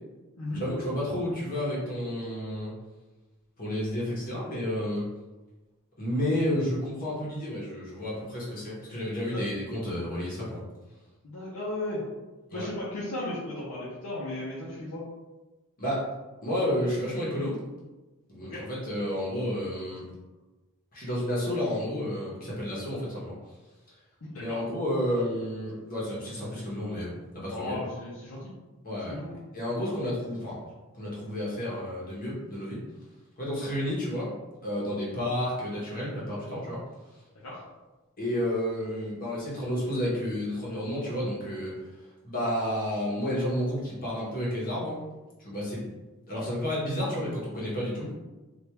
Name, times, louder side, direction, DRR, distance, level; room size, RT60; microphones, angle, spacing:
voice 1, 0.5-2.7 3.6-5.1 6.0-10.6 12.5-12.7 15.8-16.1 16.4-17.6 18.3-20.0 20.9-23.3 24.4-27.8 28.8-29.1 29.5-30.6 31.0-32.8 33.4-34.3 34.6-36.8 38.2-41.8 42.2-45.0 45.4-45.8 46.3-48.1, equal, 40° left, -7 dB, 1.0 m, -31 dB
voice 2, 11.2-12.0 12.5-15.0 18.4-18.6 24.2-24.6 27.5-28.5 29.1-29.3 37.4-37.6, left 1 dB, 85° left, -8 dB, 0.8 m, -35 dB
3.4 x 2.5 x 3.0 m, 1.2 s
head